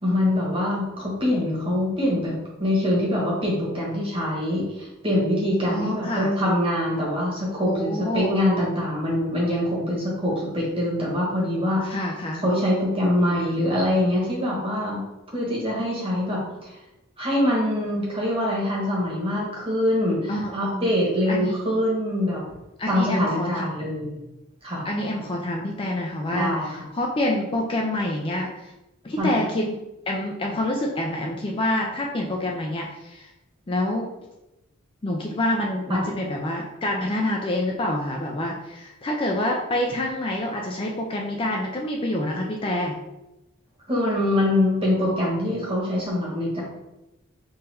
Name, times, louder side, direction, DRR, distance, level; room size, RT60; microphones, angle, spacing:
voice 1, 0.0-2.3 2.6-12.0 12.4-15.0 15.3-16.8 17.2-22.4 22.9-24.2 24.6-24.8 26.3-26.7 29.2-29.4 35.9-36.0 43.9-46.6, left 1 dB, 25° right, -4 dB, 1.3 m, -24 dB
voice 2, 5.7-6.3 7.6-8.4 11.8-12.4 20.3-20.9 21.3-21.5 22.8-23.7 24.9-28.7 29.0-29.7 30.1-33.3 33.7-34.1 35.0-43.0, left 1 dB, 25° left, 0 dB, 0.4 m, -27 dB
3.8 x 2.6 x 4.2 m, 0.94 s
head